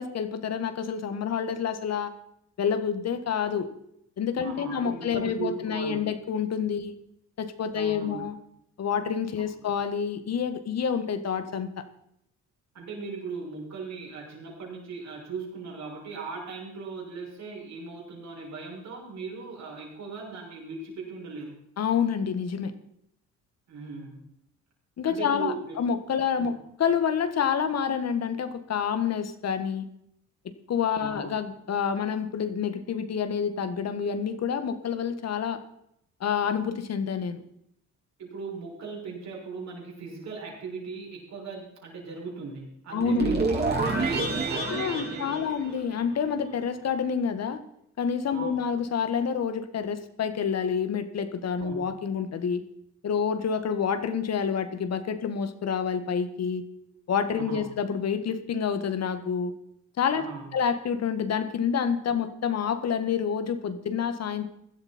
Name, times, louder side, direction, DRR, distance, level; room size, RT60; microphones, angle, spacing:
voice 1, 0.0-2.1 2.6-3.7 4.2-7.0 7.4-8.4 8.8-11.8 21.8-22.7 25.0-29.9 30.7-35.6 36.2-37.4 42.9-43.4 44.7-47.6 48.0-52.6 53.0-56.6 57.1-59.5 60.0-60.3 60.5-64.5, left 7 dB, 55° left, 10 dB, 1.7 m, -28 dB
voice 2, 4.4-6.1 7.7-8.2 9.4-9.5 12.7-21.6 23.7-24.2 25.1-25.7 26.3-26.6 30.9-31.3 38.2-45.4 48.3-48.6 51.6-51.9 56.9-57.0 57.3-57.7 60.1-60.5, right 4 dB, 60° right, -2 dB, 6.3 m, -38 dB
sound 1, 43.0-46.3, right 3 dB, 35° right, 4.2 m, -28 dB
16.5 x 12.5 x 4.4 m, 0.75 s
cardioid pair, 90°, 30 cm